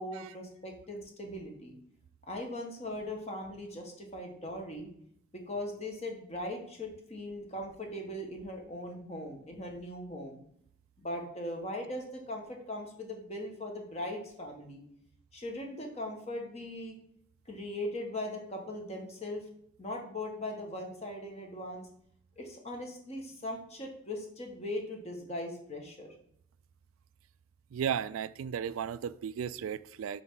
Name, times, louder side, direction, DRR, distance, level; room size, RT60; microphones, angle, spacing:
voice 1, 0.0-1.8 2.3-4.9 5.3-10.4 11.0-14.8 15.3-17.0 17.4-19.4 19.8-21.8 22.4-26.1, left 1 dB, 30° left, 2 dB, 1.5 m, -39 dB
voice 2, 27.7-30.2, right 8 dB, 80° right, 16 dB, 0.3 m, -35 dB
7.9 x 5.5 x 3.8 m, 0.68 s
head